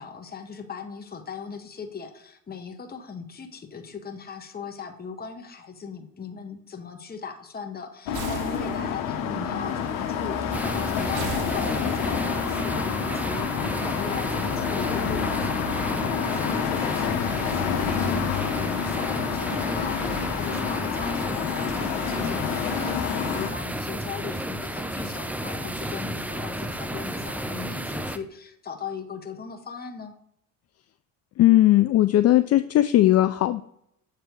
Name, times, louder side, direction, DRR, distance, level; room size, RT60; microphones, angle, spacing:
voice 1, 0.0-30.1, left 5 dB, 30° left, 5 dB, 1.1 m, -39 dB
sound 1, 8.1-23.5, left 7 dB, 75° left, 1.1 m, -28 dB
sound 2, 8.1-9.1 11.1-12.2, right 7 dB, 65° right, 1.0 m, -38 dB
sound 3, 10.5-28.2, right 1 dB, 5° right, 0.6 m, -32 dB
voice 2, 31.4-33.6, left 14 dB, 50° left, 11 dB, 0.4 m, -18 dB
7.9 x 3.3 x 4.5 m, 0.72 s
supercardioid pair, 70°, 33 cm